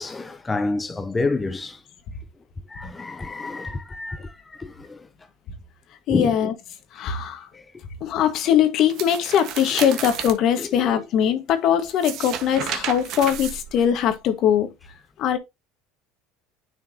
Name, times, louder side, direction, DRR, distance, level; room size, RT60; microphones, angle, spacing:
voice 1, 0.0-1.8 2.7-5.1 6.1-6.4 7.5-7.6 9.7-9.9 10.6-11.0, left 3 dB, 20° left, 0.6 m, -29 dB
voice 2, 6.1-6.5 6.9-7.5 8.0-14.7 15.2-15.4, left 9 dB, 55° left, 1.5 m, -21 dB
sound 1, 8.9-10.4 11.9-14.1, right 9 dB, 60° right, 1.3 m, -32 dB
9.4 x 4.5 x 2.8 m
supercardioid pair, 90°, 0 cm